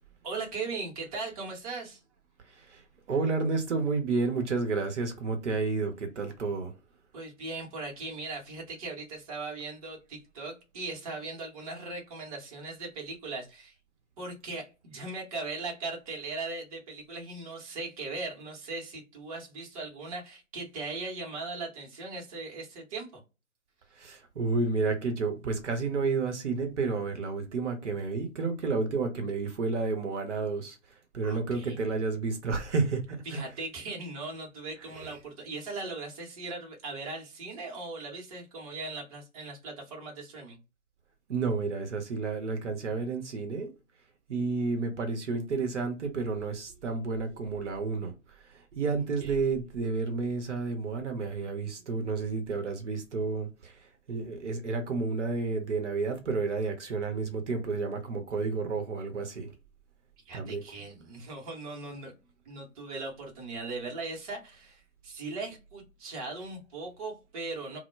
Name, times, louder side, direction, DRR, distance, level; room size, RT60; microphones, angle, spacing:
voice 1, 0.2-2.0 7.1-13.7 14.2-23.2 31.2-31.8 33.2-40.6 49.2-49.3 60.2-62.1 62.4-67.8, right 3 dB, 25° right, 0.8 m, -39 dB
voice 2, 2.5-2.8 3.1-6.7 24.0-30.8 31.1-33.7 34.8-35.2 41.3-43.7 44.3-48.1 48.5-53.8 54.1-59.5 60.3-60.6, right 4 dB, 55° right, 0.8 m, -31 dB
2.1 x 2.1 x 3.0 m
figure-of-eight pair, 135°, 42 cm